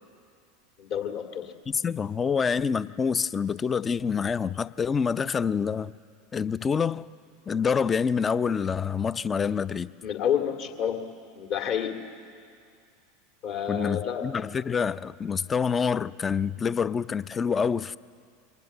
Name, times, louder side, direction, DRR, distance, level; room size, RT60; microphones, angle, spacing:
voice 1, 0.8-1.5 10.0-11.0 11.3-12.0 13.4-14.3, left 8 dB, 50° left, 2.3 m, -29 dB
voice 2, 1.7-5.9 6.3-7.1 7.5-9.9 13.7-18.0, left 6 dB, 25° left, 0.5 m, -27 dB
24.5 x 19.0 x 7.9 m
figure-of-eight pair, 80°, 0 cm